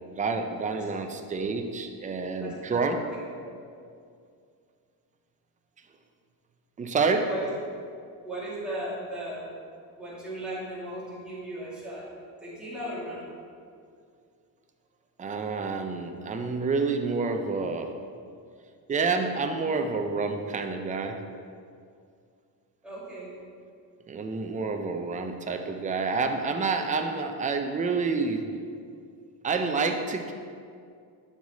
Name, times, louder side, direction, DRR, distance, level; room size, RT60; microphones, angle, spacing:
voice 1, 0.2-3.0 6.8-7.3 15.2-18.0 18.9-21.2 24.1-28.5 29.4-30.3, right 4 dB, 20° right, 5 dB, 0.5 m, -28 dB
voice 2, 2.4-3.0 3.4-3.6 7.2-7.5 8.2-9.5 10.0-12.1 12.4-13.3 22.8-23.3 24.8-24.9, right 1 dB, ahead, -9 dB, 2.3 m, -37 dB
12.0 x 4.8 x 4.1 m, 2.3 s
cardioid pair, 170°, 40 cm